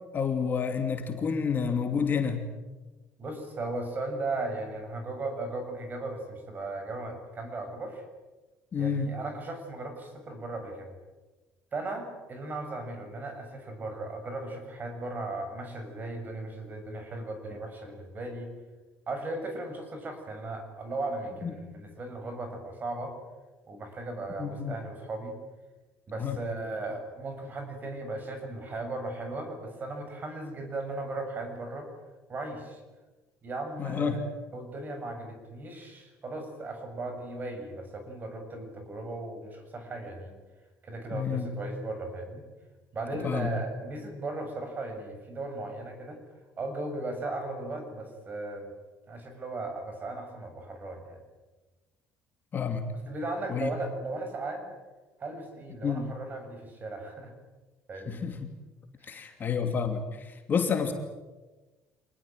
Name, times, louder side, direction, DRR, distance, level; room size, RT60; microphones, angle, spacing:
voice 1, 0.1-2.5 8.7-9.1 21.4-21.5 24.4-24.8 26.2-26.4 33.8-34.2 41.1-41.5 43.2-43.5 52.5-52.8 53.5-53.7 55.8-56.1 58.1-58.4 59.1-60.9, left 6 dB, 35° left, 5 dB, 2.7 m, -29 dB
voice 2, 3.2-8.0 8.8-10.9 11.7-18.5 19.1-23.1 23.7-25.4 26.1-31.9 32.3-32.8 33.4-34.2 34.5-40.3 40.8-42.4 42.9-46.2 46.6-48.7 49.1-51.2 53.1-54.7 55.2-57.3 57.9-58.2 59.0-59.4, right 2 dB, 30° right, 6 dB, 7.1 m, -37 dB
26.5 x 20.0 x 9.1 m, 1.2 s
cardioid pair, 140°, 6 cm